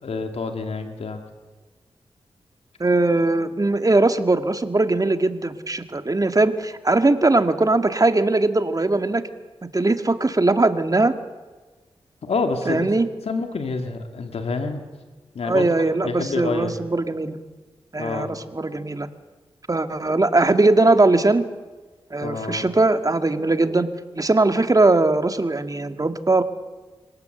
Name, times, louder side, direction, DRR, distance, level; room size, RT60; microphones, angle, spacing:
voice 1, 0.0-1.2 12.2-12.9 13.2-14.8 15.3-16.8 18.0-18.3 22.2-22.7, left 4 dB, 75° left, 5 dB, 2.5 m, -28 dB
voice 2, 2.8-9.2 9.6-11.1 12.7-13.1 15.5-17.4 17.9-19.1 19.7-21.4 22.1-23.9 24.1-26.4, right 2 dB, 35° right, 8 dB, 2.1 m, -20 dB
24.5 x 18.0 x 8.1 m, 1.3 s
cardioid pair, 40°, 11 cm